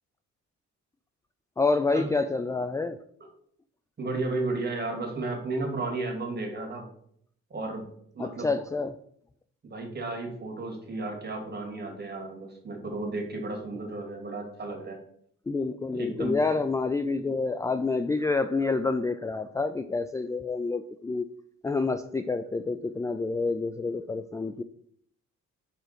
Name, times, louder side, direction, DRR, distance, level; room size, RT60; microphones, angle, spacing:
voice 1, 1.6-3.0 8.2-9.0 15.5-21.3 21.6-24.6, left 3 dB, 10° left, 10 dB, 0.3 m, -28 dB
voice 2, 4.0-6.9 7.5-7.9 8.1-8.5 9.6-15.0 15.9-16.4, right 2 dB, 35° right, 1 dB, 2.7 m, -33 dB
5.5 x 4.9 x 6.0 m, 0.66 s
cardioid pair, 90°, 30 cm